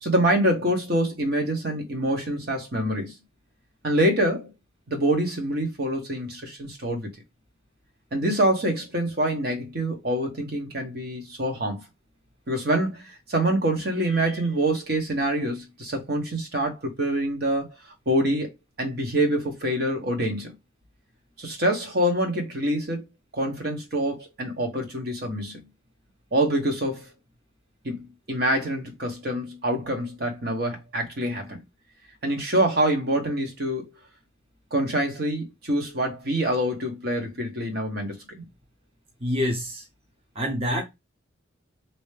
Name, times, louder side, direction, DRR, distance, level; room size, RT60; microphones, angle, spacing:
voice 1, 0.0-3.1 3.8-4.5 4.9-7.1 8.1-11.8 12.5-17.8 18.1-18.5 18.8-20.5 21.4-23.0 23.3-25.7 26.3-27.1 27.8-31.6 32.2-33.9 34.7-38.5, right 1 dB, 50° right, 1.1 m, -26 dB
voice 2, 39.2-39.9 40.3-40.8, equal, 30° right, 0.9 m, -26 dB
3.3 x 2.9 x 3.3 m
head